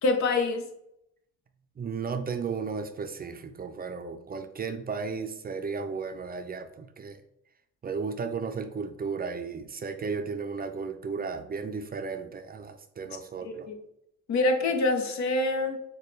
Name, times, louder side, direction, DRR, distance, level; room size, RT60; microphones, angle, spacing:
voice 1, 0.0-0.6 13.4-13.7 14.3-15.8, left 2 dB, 70° left, 6 dB, 0.9 m, -25 dB
voice 2, 1.8-7.2 7.8-13.7, right 5 dB, 30° right, 8 dB, 0.4 m, -34 dB
6.6 x 2.3 x 3.2 m, 0.76 s
cardioid pair, 90°, 30 cm